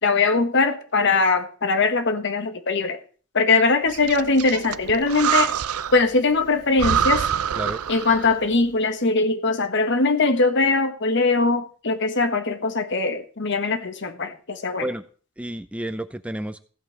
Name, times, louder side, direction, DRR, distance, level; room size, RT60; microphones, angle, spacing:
voice 1, 0.0-3.0 3.3-5.5 5.9-7.3 7.9-14.9, left 3 dB, 55° left, 1.3 m, -21 dB
Breathing, 3.9-6.1 6.4-6.5 6.8-8.5, right 8 dB, 90° right, 0.6 m, -25 dB
voice 2, 15.4-16.6, right 1 dB, 5° right, 0.5 m, -30 dB
16.0 x 5.4 x 7.5 m
head